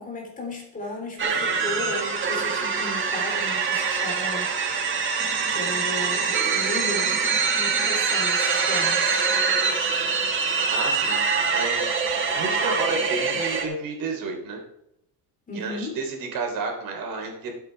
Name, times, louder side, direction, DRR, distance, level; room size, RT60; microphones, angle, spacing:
voice 1, 0.0-4.9 5.5-9.3 15.5-16.0, left 2 dB, 20° left, 0 dB, 3.3 m, -35 dB
sound 1, 1.2-13.6, right 5 dB, 30° right, 1.9 m, -24 dB
voice 2, 10.7-11.3 11.5-11.8 12.3-14.6 15.5-17.5, right 3 dB, 60° right, 2 dB, 3.7 m, -31 dB
14.5 x 8.1 x 4.6 m, 0.79 s
cardioid pair, 170°, 39 cm